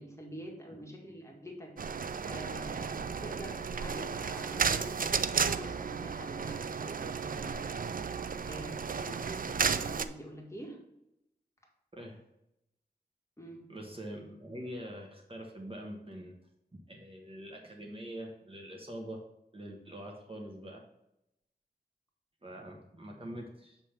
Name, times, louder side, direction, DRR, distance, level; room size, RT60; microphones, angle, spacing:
voice 1, 0.0-7.7 8.5-10.8 13.4-13.7, equal, 15° left, -1 dB, 1.8 m, -46 dB
sound 1, 1.8-10.1, right 6 dB, 55° right, 0.4 m, -33 dB
voice 2, 13.7-16.3 16.7-19.2 19.5-20.8 22.4-23.8, equal, 35° right, 0 dB, 1.2 m, -44 dB
7.2 x 3.5 x 5.9 m, 0.85 s
wide cardioid pair, 60°, 17 cm